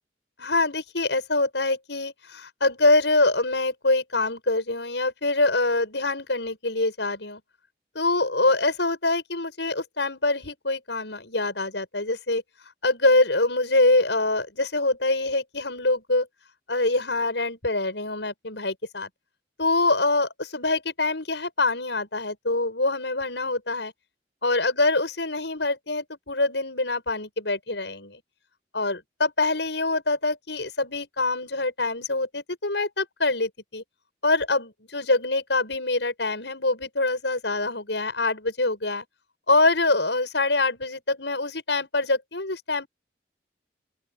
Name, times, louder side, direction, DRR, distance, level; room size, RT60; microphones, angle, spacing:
voice 1, 0.4-7.4 8.0-12.4 12.8-16.3 16.7-19.1 19.6-23.9 24.4-28.2 28.7-33.8 34.2-39.0 39.5-42.9, left 2 dB, 80° left, 6.8 m, -25 dB
open air
head